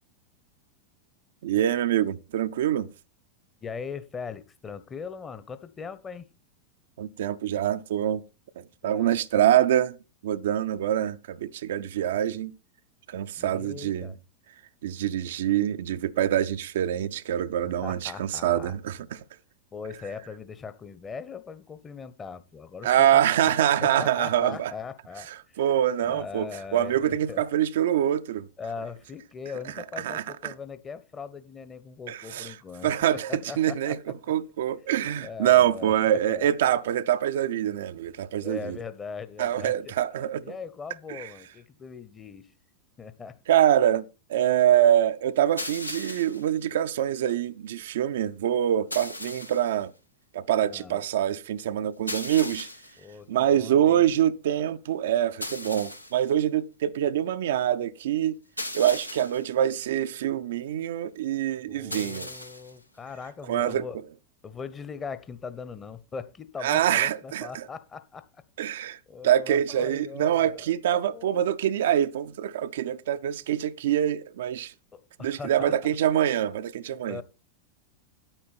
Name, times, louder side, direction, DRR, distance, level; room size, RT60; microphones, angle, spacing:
voice 1, 1.4-2.9 7.0-8.2 8.8-10.0 10.2-12.5 13.1-14.1 14.8-19.0 22.8-24.7 25.6-28.5 30.0-30.5 32.1-32.5 32.8-33.3 33.6-34.0 34.3-38.8 39.4-40.5 41.1-41.3 43.5-49.9 50.3-52.7 53.3-58.4 58.7-62.3 63.5-63.8 66.6-67.6 68.6-69.0 69.2-74.7 75.2-77.2, right 11 dB, 60° right, 0.6 m, -25 dB
voice 2, 3.6-6.3 8.8-9.2 13.4-14.2 17.8-18.8 19.7-23.5 23.8-25.6 26.0-27.4 28.6-34.0 35.2-36.5 38.4-39.9 40.4-42.5 43.0-43.4 50.6-51.0 53.0-54.1 61.7-64.0 64.4-68.4 69.1-70.7 71.0-71.5 74.9-75.7 77.1-77.2, left 5 dB, 20° left, 1.0 m, -40 dB
sound 1, 45.6-46.5 48.9-49.7 52.1-53.0 55.4-56.2 58.6-59.5 61.9-62.7, left 1 dB, 85° left, 1.1 m, -37 dB
10.0 x 8.9 x 4.2 m
figure-of-eight pair, 90°, 0 cm